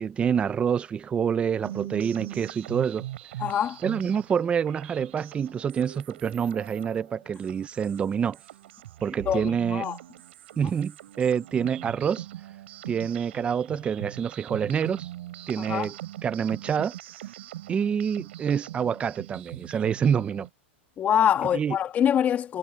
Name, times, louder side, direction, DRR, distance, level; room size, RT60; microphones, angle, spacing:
voice 1, 0.0-3.1 3.8-8.4 9.0-9.8 10.6-12.3 12.9-15.1 15.5-15.9 16.2-16.9 17.7-20.5 21.5-21.8, right 7 dB, 15° right, 0.7 m, -27 dB
sound 1, 1.6-20.5, right 14 dB, 70° right, 4.3 m, -42 dB
voice 2, 3.4-3.8 9.3-10.0 15.6-15.9 21.0-22.6, left 9 dB, 25° left, 1.8 m, -24 dB
supercardioid pair, 140°, 6 cm